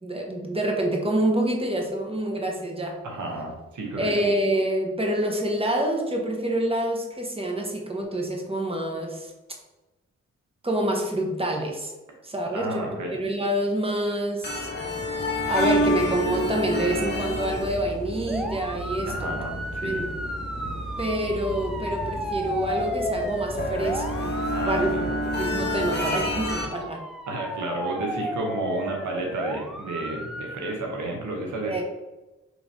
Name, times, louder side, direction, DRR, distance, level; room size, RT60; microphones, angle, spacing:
voice 1, 0.0-3.0 4.0-9.3 10.6-11.9 12.2-14.7 15.5-19.3 19.8-20.1 21.0-24.3 24.6-25.0 25.4-27.0 31.7-31.8, right 1 dB, 20° right, 1 dB, 1.0 m, -27 dB
voice 2, 3.0-4.1 12.5-13.2 19.1-20.1 24.5-25.1 27.3-31.8, right 2 dB, 85° right, 0 dB, 0.9 m, -32 dB
sound 1, 14.4-26.7, equal, 35° left, 0.9 m, -30 dB
sound 2, 18.3-30.7, equal, ahead, 0.5 m, -33 dB
4.8 x 3.1 x 2.7 m, 1.1 s
cardioid pair, 45°, 29 cm